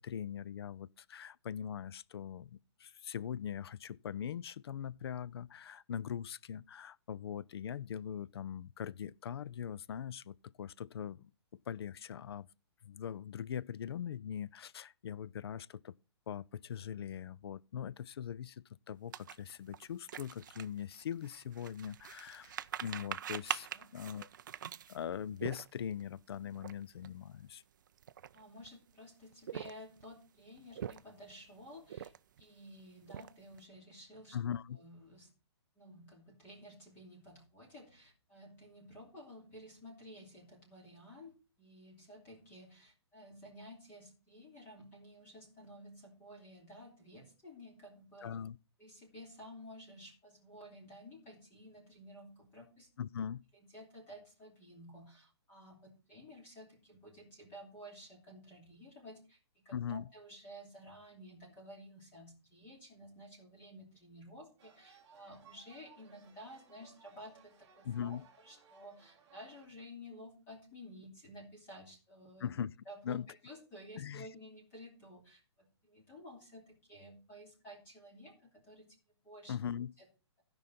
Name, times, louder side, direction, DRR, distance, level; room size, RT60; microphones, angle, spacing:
voice 1, 0.0-11.3 11.7-12.5 12.8-16.0 16.3-24.3 24.9-27.6 34.3-34.8 48.2-48.6 53.0-53.4 59.7-60.1 67.8-68.2 72.4-72.7 73.0-73.3 74.0-74.3 79.5-79.9, left 8 dB, 60° left, 0.4 m, -41 dB
sound 1, 19.1-26.0 26.5-26.7 27.0-27.2 27.9-28.7 29.3-30.1 30.6-31.3 31.9-32.4 32.8-33.6, right 9 dB, 45° right, 0.4 m, -43 dB
voice 2, 28.3-34.4 34.7-35.3 35.7-48.4 48.8-52.9 53.6-72.5 72.9-79.0 79.2-79.5 80.0-80.1, equal, 15° left, 2.8 m, -53 dB
sound 2, 64.6-69.7, right 7 dB, 20° right, 1.6 m, -63 dB
16.0 x 5.3 x 4.2 m
hypercardioid pair, 170°, 15 cm